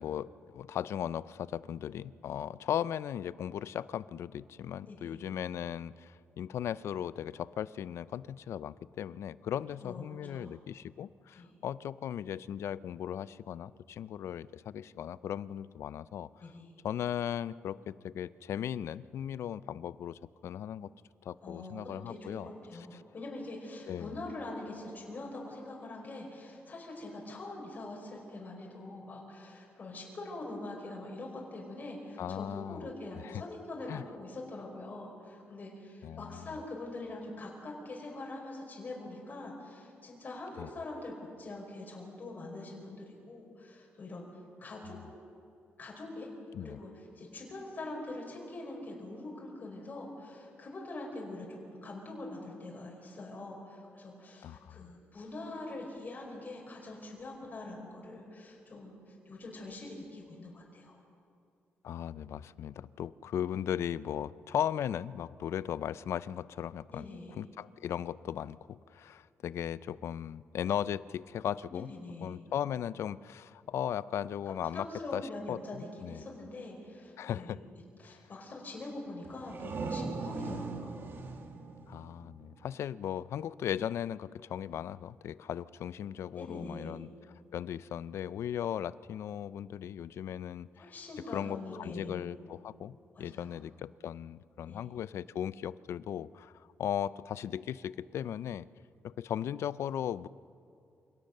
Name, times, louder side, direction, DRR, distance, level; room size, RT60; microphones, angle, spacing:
voice 1, 0.0-16.3 16.8-20.9 21.2-22.5 22.9-23.0 23.9-24.2 32.2-32.9 33.2-33.4 33.9-34.0 36.0-36.5 40.6-40.7 44.8-45.0 46.5-46.8 54.4-54.9 61.8-67.1 67.4-71.9 72.2-74.9 75.1-76.2 77.2-77.6 78.0-78.2 80.4-80.6 81.9-87.1 87.5-90.7 91.3-98.6 99.0-100.3, left 10 dB, 75° left, 17 dB, 0.5 m, -37 dB
voice 2, 4.9-5.2 9.8-10.5 11.3-11.5 16.4-16.7 21.4-44.2 44.6-45.0 45.8-46.3 46.6-61.0 66.9-67.4 71.7-72.4 74.5-77.5 78.0-81.1 86.3-87.0 90.8-92.2 93.1-93.6 94.7-94.8, left 2 dB, 40° left, -1 dB, 5.1 m, -44 dB
sound 1, 79.2-82.8, right 4 dB, 55° right, 2.0 m, -40 dB
27.5 x 18.0 x 6.7 m, 2.5 s
cardioid pair, 125°, 5 cm